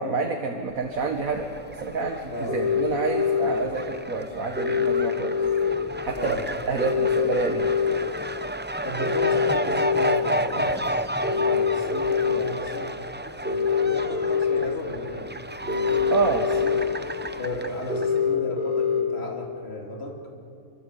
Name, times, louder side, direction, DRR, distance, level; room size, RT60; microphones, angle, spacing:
voice 1, 0.0-1.5 1.8-5.4 6.1-6.4 6.7-7.7 16.1-16.5, right 4 dB, 85° right, 2 dB, 2.0 m, -27 dB
Fowl, 0.8-18.2, right 1 dB, 15° right, 0.4 m, -32 dB
sound 1, 2.5-3.5 4.6-5.7 6.8-7.9 9.0-10.1 11.2-12.4 13.5-14.6 15.7-16.8 17.9-19.0, left 6 dB, 50° right, 5.0 m, -24 dB
voice 2, 6.2-6.5 8.8-10.9 11.3-12.9 13.4-15.4 15.6-16.3 16.6-16.8 17.4-20.2, left 1 dB, 50° left, 0 dB, 3.5 m, -35 dB
27.0 x 24.0 x 8.4 m, 2.6 s
omnidirectional pair, 1.4 m